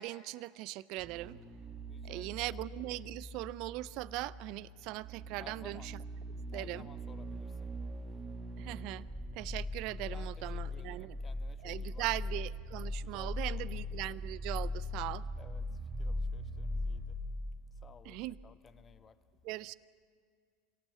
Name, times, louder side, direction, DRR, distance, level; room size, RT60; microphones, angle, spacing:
voice 1, 0.0-1.4 2.0-6.0 6.5-6.9 8.6-9.1 9.3-11.2 11.6-15.2 18.0-18.4 19.4-19.7, right 18 dB, 60° right, 19 dB, 0.5 m, -40 dB
sound 1, 1.0-18.5 18.8-18.9, left 1 dB, 25° right, 1.7 m, -41 dB
voice 2, 1.9-2.6 5.4-5.9 6.5-7.7 10.1-12.1 13.0-13.6 15.4-15.7 16.0-17.2 17.7-19.2, left 6 dB, 30° left, 12 dB, 1.2 m, -57 dB
25.0 x 17.5 x 7.4 m, 2.2 s
hypercardioid pair, 90°, 0 cm